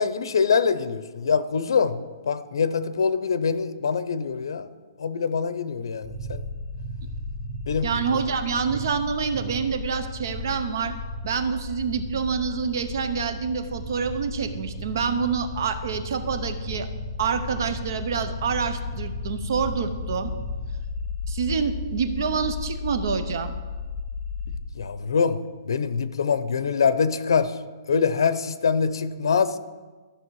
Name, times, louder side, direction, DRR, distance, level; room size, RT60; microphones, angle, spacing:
voice 1, 0.0-2.0 2.3-4.7 5.0-6.4 7.7-7.9 24.7-25.4 25.6-27.5 27.9-29.6, left 5 dB, 80° left, 13 dB, 0.7 m, -24 dB
sound 1, 6.0-24.6, left 3 dB, 5° right, 1.1 m, -34 dB
voice 2, 7.8-10.9 11.2-16.9 17.2-20.3 21.3-23.5, right 6 dB, 55° right, 10 dB, 0.8 m, -27 dB
13.5 x 6.3 x 4.8 m, 1.3 s
hypercardioid pair, 175°, 2 cm